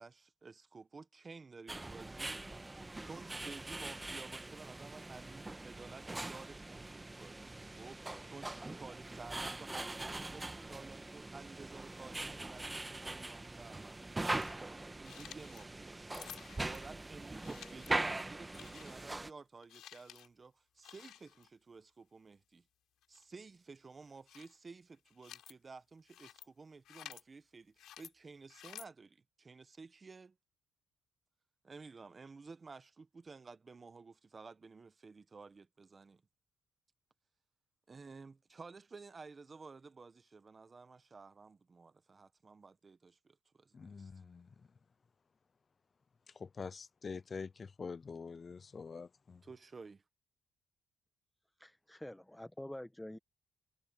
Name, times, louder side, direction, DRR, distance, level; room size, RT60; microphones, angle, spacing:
voice 1, 0.0-2.4 3.0-16.1 16.6-22.7 23.1-30.4 31.6-36.2 37.9-44.1 49.4-50.0, right 4 dB, 30° right, 1.2 m, -53 dB
sound 1, 1.7-19.3, right 2 dB, 15° right, 1.4 m, -42 dB
sound 2, 14.2-14.5 15.0-15.7 16.1-16.9 17.4-18.0 18.5-19.2 19.6-20.3 20.8-21.5 23.0-23.2 24.0-24.6 24.9-25.5 26.1-26.5 26.8-27.2 27.8-28.1 28.5-28.9, left 12 dB, 80° left, 4.3 m, -53 dB
voice 2, 43.7-44.5 46.3-49.4, left 5 dB, 35° left, 0.4 m, -46 dB
voice 3, 51.6-53.2, left 1 dB, 5° left, 1.1 m, -47 dB
cardioid pair, 90°, 0 cm